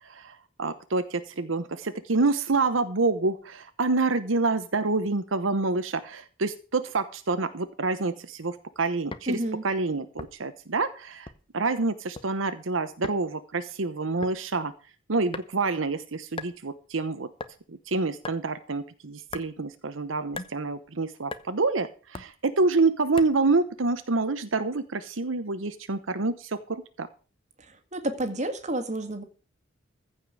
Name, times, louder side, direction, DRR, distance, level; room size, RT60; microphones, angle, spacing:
voice 1, 0.0-9.4 9.6-14.7 15.1-17.3 17.7-27.1, right 3 dB, 85° right, 1.0 m, -27 dB
sound 1, 9.1-9.3 10.2-10.6 11.3-11.6 11.9-12.3 13.0-13.2 14.2-14.4 15.3-15.7 16.4-16.6 17.4-17.6 18.2-18.4 19.3-19.5 20.3-20.6 21.3-21.5 22.1-22.4 23.2-23.4, left 3 dB, 25° left, 0.9 m, -38 dB
voice 2, 9.3-9.6 27.9-29.2, right 1 dB, 40° right, 1.9 m, -29 dB
15.0 x 5.4 x 7.7 m
head